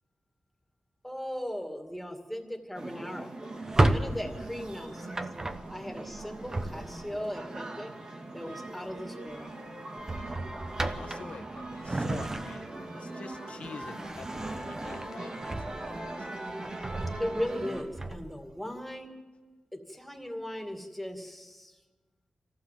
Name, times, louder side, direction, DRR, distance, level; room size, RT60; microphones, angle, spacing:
voice 1, 1.0-3.3 3.8-5.1 5.7-7.9 8.3-9.5 17.2-19.1 19.7-21.8, equal, 5° left, 3 dB, 2.3 m, -37 dB
sound 1, 2.7-17.8, right 2 dB, 45° right, 2.5 m, -41 dB
Drawer open or close, 3.5-7.2 8.7-9.0 9.3-9.5 10.0-12.9 13.3-16.1 16.5-18.4, right 2 dB, 25° right, 1.0 m, -33 dB
voice 2, 10.9-15.5 16.0-16.3, left 5 dB, 80° left, 9 dB, 1.3 m, -46 dB
25.0 x 15.5 x 7.6 m, 1.3 s
wide cardioid pair, 140°, 2 cm